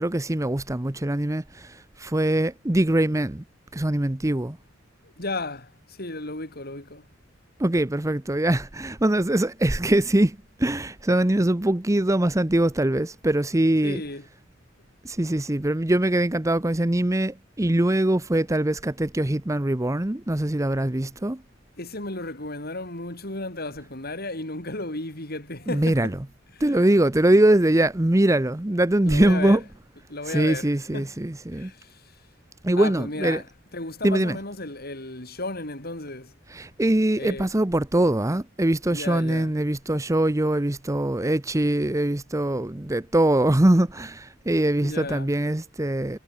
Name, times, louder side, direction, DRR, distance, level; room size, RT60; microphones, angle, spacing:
voice 1, 0.0-3.4 3.7-4.6 7.6-14.0 15.0-21.4 25.7-26.2 26.6-29.6 30.3-31.7 32.6-33.4 34.0-34.4 36.5-46.2, right 1 dB, 15° right, 0.8 m, -22 dB
voice 2, 5.0-7.1 13.8-14.2 21.8-26.2 26.5-26.7 29.0-29.6 30.1-31.1 31.5-32.0 32.8-33.4 33.7-36.3 37.2-37.5 38.9-39.5 44.8-45.3, left 2 dB, 50° left, 7.3 m, -34 dB
head